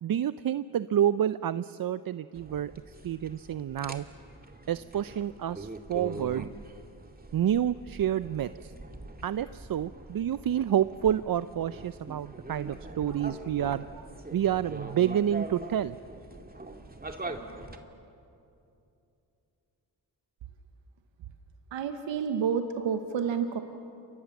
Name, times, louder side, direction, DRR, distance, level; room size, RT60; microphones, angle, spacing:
voice 1, 0.0-4.1 4.7-6.5 7.3-8.7 9.2-16.0, right 10 dB, 55° right, 14 dB, 0.6 m, -29 dB
sound 1, 2.3-17.8, right 2 dB, 20° right, 2.4 m, -43 dB
voice 2, 21.7-23.6, right 7 dB, 90° right, 7 dB, 1.2 m, -29 dB
28.5 x 23.5 x 7.3 m, 2.7 s
cardioid pair, 55°, 44 cm